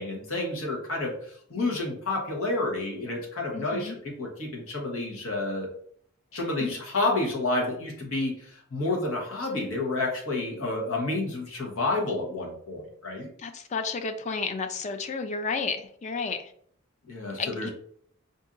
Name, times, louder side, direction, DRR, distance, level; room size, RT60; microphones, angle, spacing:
voice 1, 0.0-5.7 6.3-13.3 17.1-17.7, left 2 dB, 90° left, -1 dB, 1.1 m, -30 dB
voice 2, 3.5-4.0 6.6-6.7 13.4-16.5 17.4-17.7, left 4 dB, 35° left, 7 dB, 0.3 m, -32 dB
4.0 x 2.7 x 2.5 m, 0.62 s
head